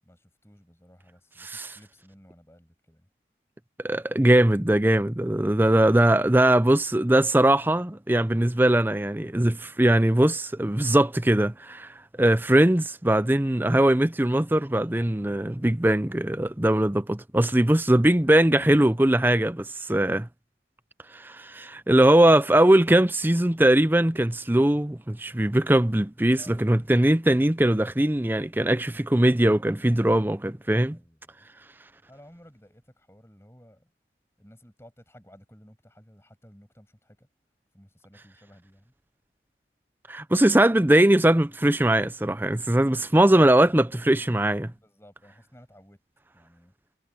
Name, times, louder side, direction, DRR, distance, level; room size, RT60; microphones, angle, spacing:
voice 1, 0.0-3.1 26.4-26.7 30.9-31.5 32.1-33.9 34.4-37.3 37.7-38.9 42.7-43.2 44.7-46.0 46.3-46.7, equal, 15° left, 6.8 m, -55 dB
voice 2, 3.8-11.9 12.2-20.3 21.1-31.0 40.1-44.7, right 1 dB, 10° right, 0.6 m, -21 dB
head